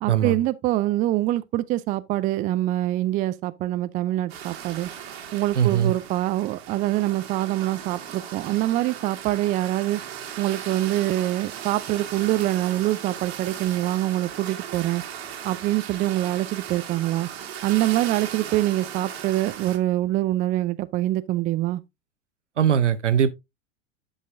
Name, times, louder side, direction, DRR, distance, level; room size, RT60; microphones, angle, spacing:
voice 1, 0.0-4.9 5.3-10.0 10.4-15.0 15.4-17.3 17.6-21.8, right 15 dB, 25° right, 0.4 m, -25 dB
sound 1, 4.3-19.8, right 9 dB, 60° right, 1.6 m, -37 dB
voice 2, 5.5-5.9 22.6-23.3, right 9 dB, 80° right, 0.9 m, -20 dB
10.0 x 5.5 x 2.6 m
figure-of-eight pair, 80°, 35 cm